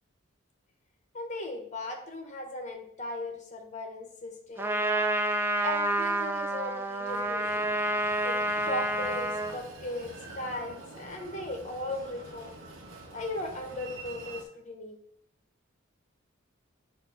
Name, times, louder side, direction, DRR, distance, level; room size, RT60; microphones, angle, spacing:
voice 1, 1.1-5.0 5.6-7.8 8.2-12.5 13.1-15.0, left 2 dB, 35° left, 3 dB, 1.1 m, -37 dB
Trumpet, 4.6-9.6, right 1 dB, 10° right, 0.3 m, -29 dB
Train, 7.0-14.4, right 3 dB, 75° right, 1.0 m, -46 dB
6.7 x 2.7 x 5.6 m, 0.69 s
head